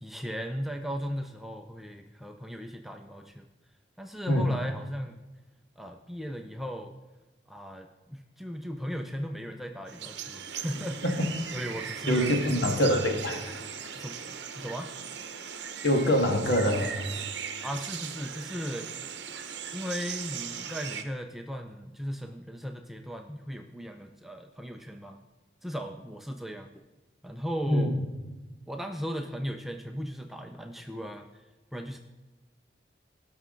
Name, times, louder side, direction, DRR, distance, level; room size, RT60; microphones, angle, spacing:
voice 1, 0.0-3.5 4.0-5.2 5.8-6.9 7.5-11.1 11.5-12.4 14.0-14.9 17.6-19.0 19.7-25.2 25.6-26.8 27.2-28.0 28.7-31.4 31.7-32.0, equal, ahead, 4 dB, 0.4 m, -37 dB
sound 1, 9.9-21.0, right 7 dB, 65° right, 0.8 m, -38 dB
voice 2, 12.1-13.4 15.8-17.1 27.7-27.9, equal, 60° left, 2 dB, 1.7 m, -24 dB
18.0 x 6.2 x 3.8 m, 1.2 s
head